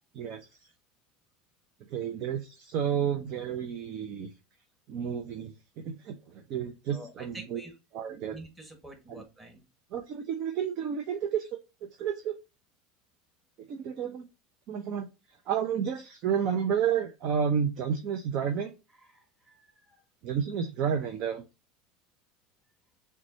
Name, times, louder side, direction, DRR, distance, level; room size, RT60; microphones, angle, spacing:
voice 1, 1.9-4.3 4.9-7.6 7.9-8.4 9.1-9.2 9.9-12.4 13.7-14.3 14.7-15.1 15.5-18.7 20.2-21.4, right 8 dB, 55° right, 6 dB, 0.6 m, -31 dB
voice 2, 6.9-7.7 8.1-9.6 19.1-19.9, right 1 dB, 15° right, 3 dB, 1.5 m, -48 dB
5.9 x 2.3 x 2.7 m, 0.27 s
hypercardioid pair, 80°, 0 cm